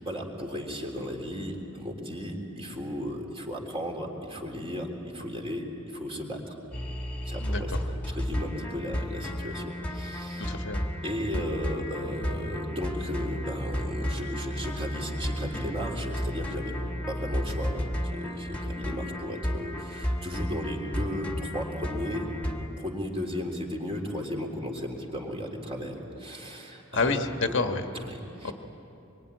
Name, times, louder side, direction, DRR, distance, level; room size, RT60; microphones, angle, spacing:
voice 1, 0.0-6.6 7.3-10.6 11.0-16.8 17.1-22.3 22.8-27.2 27.9-28.5, equal, 25° right, 0 dB, 3.5 m, -35 dB
sound 1, 6.7-22.7, equal, 5° left, 2.0 m, -33 dB
voice 2, 10.4-10.9 26.9-27.8 28.4-28.5, left 3 dB, 60° left, 5 dB, 1.3 m, -28 dB
25.5 x 23.5 x 9.9 m, 3.0 s
head